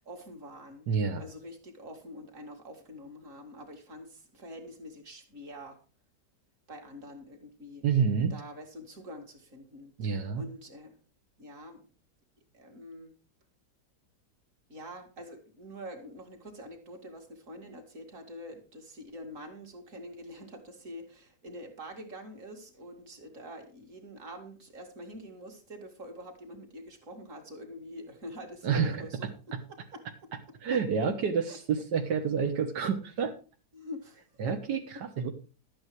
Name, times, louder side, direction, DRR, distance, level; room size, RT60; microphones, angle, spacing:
voice 1, 0.0-0.9 1.2-5.8 6.7-7.8 8.3-11.0 11.4-11.9 12.5-13.1 14.7-29.3 29.7-30.0 30.7-30.8 31.5-31.6 33.7-34.5, equal, 50° right, 3 dB, 2.7 m, -46 dB
voice 2, 0.9-1.2 7.8-8.3 10.0-10.4 28.6-29.6 30.6-33.3 34.4-35.3, right 6 dB, 85° right, 5 dB, 1.8 m, -29 dB
12.5 x 8.8 x 4.6 m, 0.35 s
omnidirectional pair, 1.8 m